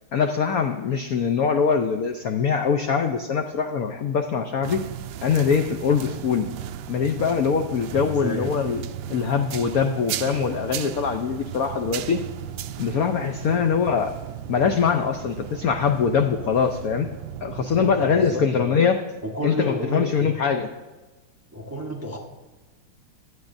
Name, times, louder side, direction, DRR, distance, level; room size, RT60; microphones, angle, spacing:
voice 1, 0.1-4.8 5.2-6.5 6.9-8.8 9.1-12.2 12.8-14.1 14.5-17.1 17.4-19.0 19.4-20.7, left 6 dB, 80° left, 6 dB, 0.8 m, -23 dB
sound 1, 4.6-18.2, right 10 dB, 75° right, 1.2 m, -35 dB
voice 2, 7.9-8.5 13.5-13.7 17.5-18.7 19.2-20.3 21.5-22.2, equal, 15° right, 0 dB, 0.5 m, -31 dB
16.0 x 10.5 x 2.6 m, 1.2 s
omnidirectional pair, 2.3 m